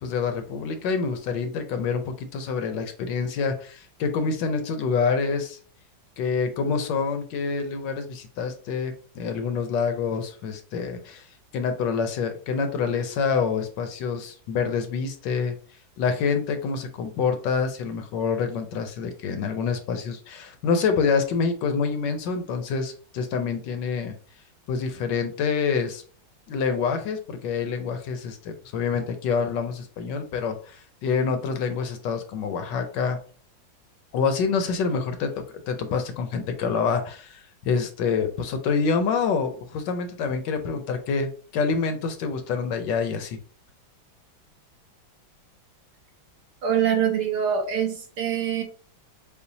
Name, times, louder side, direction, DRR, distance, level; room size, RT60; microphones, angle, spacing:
voice 1, 0.0-5.6 6.2-11.3 11.5-15.6 16.0-24.1 24.7-26.0 26.5-33.2 34.1-35.3 35.7-43.4, left 5 dB, 75° left, 7 dB, 1.2 m, -27 dB
voice 2, 46.6-48.6, right 9 dB, 65° right, 3 dB, 1.4 m, -24 dB
6.9 x 2.3 x 2.7 m, 0.43 s
omnidirectional pair, 2.1 m